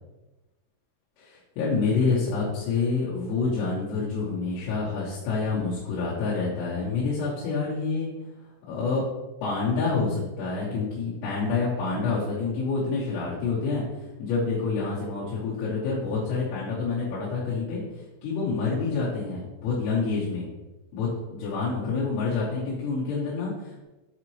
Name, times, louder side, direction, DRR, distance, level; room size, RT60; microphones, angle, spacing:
voice 1, 1.2-8.1 8.7-9.0 9.4-13.8 14.2-20.5 20.9-23.8, left 4 dB, 90° left, -8 dB, 3.8 m, -27 dB
8.1 x 3.9 x 3.1 m, 1.1 s
omnidirectional pair, 5.6 m